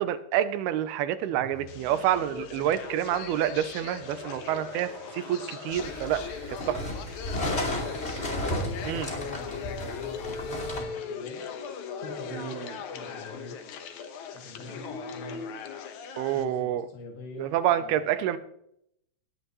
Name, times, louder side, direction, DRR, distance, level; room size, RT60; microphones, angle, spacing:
voice 1, 0.0-6.2 6.7-6.8 8.8-9.1 12.3-12.8 16.2-16.9 17.4-18.4, right 11 dB, 80° right, 12 dB, 2.6 m, -28 dB
sound 1, 1.3-9.2, right 3 dB, 35° right, 2.1 m, -49 dB
sound 2, 1.7-16.4, left 6 dB, 65° left, 2.0 m, -39 dB
voice 2, 2.3-2.7 7.4-7.9 8.2-11.4 12.0-12.6 12.9-13.6 14.3-15.5 16.3-18.2, left 2 dB, 90° left, 1 dB, 4.3 m, -45 dB
sound 3, 5.7-10.8, left 1 dB, 20° left, 2.1 m, -33 dB
19.0 x 10.0 x 3.1 m, 0.74 s
omnidirectional pair, 4.5 m